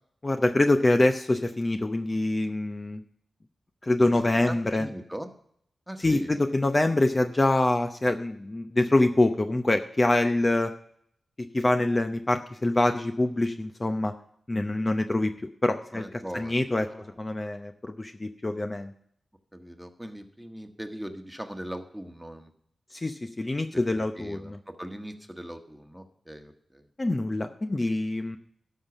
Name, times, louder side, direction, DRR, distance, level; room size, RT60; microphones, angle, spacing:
voice 1, 0.2-3.0 3.8-4.9 6.0-10.7 11.4-14.1 14.5-15.3 15.6-16.9 17.2-18.9 22.9-24.6 27.0-28.4, left 2 dB, 35° left, 6 dB, 0.8 m, -25 dB
voice 2, 4.5-5.3 5.9-6.4 15.9-16.5 16.8-17.1 19.5-22.5 23.9-26.8, equal, 5° right, 5 dB, 1.5 m, -40 dB
12.0 x 5.8 x 7.2 m, 0.67 s
cardioid pair, 45°, 0 cm